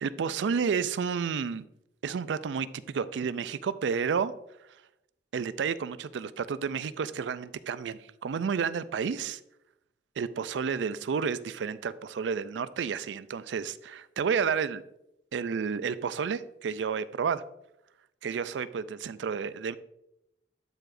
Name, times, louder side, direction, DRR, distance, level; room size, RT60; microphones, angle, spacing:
voice 1, 0.0-1.7 2.0-4.3 5.3-9.4 10.2-14.8 15.3-17.4 18.2-19.8, right 6 dB, 75° right, 15 dB, 0.4 m, -31 dB
12.0 x 4.8 x 2.6 m, 0.85 s
head